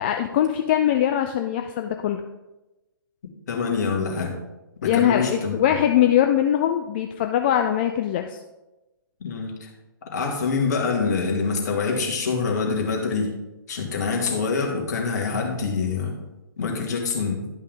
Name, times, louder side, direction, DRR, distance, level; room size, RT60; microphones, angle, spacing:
voice 1, 0.0-2.2 4.8-8.4, left 10 dB, 25° left, 5 dB, 0.3 m, -22 dB
voice 2, 3.5-4.3 4.8-5.6 9.2-9.7 10.1-13.3 13.7-16.2 16.6-17.5, left 4 dB, 50° left, 1 dB, 1.8 m, -25 dB
10.5 x 5.4 x 3.8 m, 1.0 s
figure-of-eight pair, 125°, 12 cm